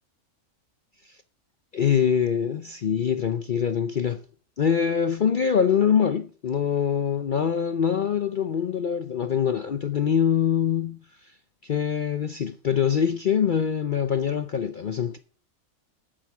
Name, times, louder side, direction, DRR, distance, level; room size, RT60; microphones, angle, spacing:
voice 1, 1.7-4.2 4.6-11.3 11.6-15.2, left 8 dB, 55° left, 0.5 m, -24 dB
8.7 x 8.2 x 6.0 m
omnidirectional pair, 1.5 m